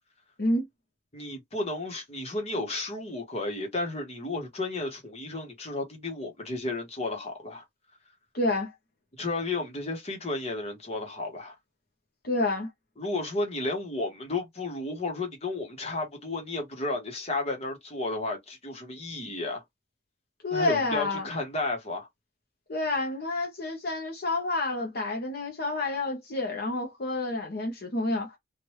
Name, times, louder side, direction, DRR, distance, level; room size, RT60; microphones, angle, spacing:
voice 1, 1.1-7.6 9.2-11.5 13.0-19.6 20.5-22.1, left 2 dB, 35° left, 1.2 m, -33 dB
voice 2, 8.3-8.7 12.2-12.7 20.4-21.3 22.7-28.3, left 2 dB, 55° left, 0.9 m, -29 dB
3.1 x 2.5 x 3.1 m
head